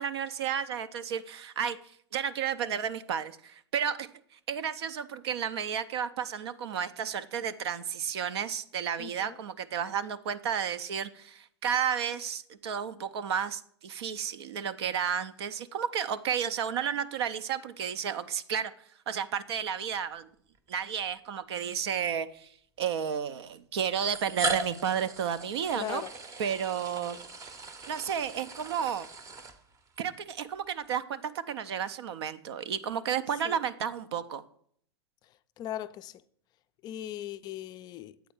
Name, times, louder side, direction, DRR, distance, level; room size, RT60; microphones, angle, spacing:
voice 1, 0.0-1.8 2.1-18.7 19.1-20.3 20.7-22.5 22.8-26.0 26.4-27.2 27.9-29.1 30.0-34.4, right 8 dB, 70° right, 0.5 m, -32 dB
voice 2, 9.0-9.4 25.7-26.1 33.4-33.6 35.6-36.2 36.8-38.2, left 12 dB, 30° left, 0.3 m, -38 dB
sound 1, 20.5-20.7 21.7-21.8 23.0-23.1 24.0-30.0, right 3 dB, 25° right, 0.7 m, -38 dB
8.0 x 4.2 x 4.8 m
hypercardioid pair, 110°, 14 cm